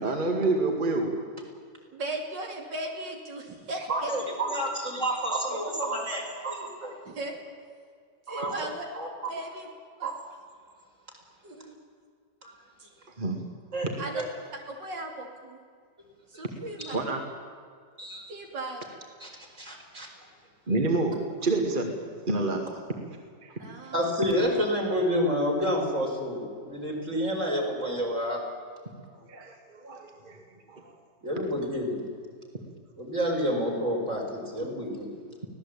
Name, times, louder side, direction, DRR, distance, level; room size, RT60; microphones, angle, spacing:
voice 1, 0.0-1.1 13.2-13.5 16.9-17.2 20.7-21.9 22.2-22.8 23.4-23.5 29.3-31.0, right 2 dB, 25° right, 3 dB, 2.2 m, -28 dB
voice 2, 1.9-4.1 7.1-7.4 8.3-8.9 9.3-9.7 10.0-10.1 11.4-11.8 14.0-14.2 14.5-15.6 16.3-17.0 18.3-18.8 23.6-24.0, right 2 dB, 80° right, 1 dB, 3.4 m, -37 dB
voice 3, 3.9-6.9 8.3-8.7 8.9-9.3 10.0-10.2 12.4-12.5 13.7-13.9 14.1-14.3 16.8-16.9 18.0-18.3 19.2-20.1 23.9-28.4 31.2-32.1 33.0-35.2, equal, 45° right, 0 dB, 5.4 m, -29 dB
24.5 x 17.5 x 8.7 m, 2.1 s
omnidirectional pair, 1.9 m